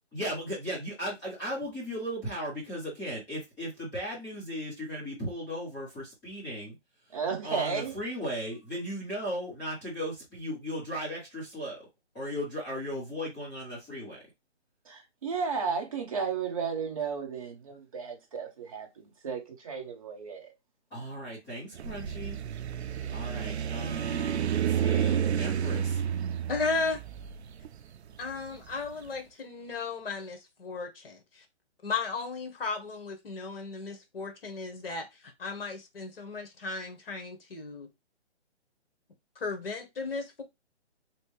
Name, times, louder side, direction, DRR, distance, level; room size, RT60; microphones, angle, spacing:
voice 1, 0.1-6.8 7.4-11.8 12.1-14.2 20.9-22.4 23.1-26.0, equal, 5° left, 0.9 m, -36 dB
voice 2, 7.1-7.9 14.9-20.5, right 6 dB, 30° right, 0.8 m, -33 dB
sound 1, 21.7-28.9, right 9 dB, 70° right, 0.5 m, -30 dB
voice 3, 26.5-27.0 28.2-31.4 31.8-37.9 39.4-40.4, left 4 dB, 55° left, 1.3 m, -35 dB
3.3 x 2.8 x 3.2 m
hypercardioid pair, 170°, 35 cm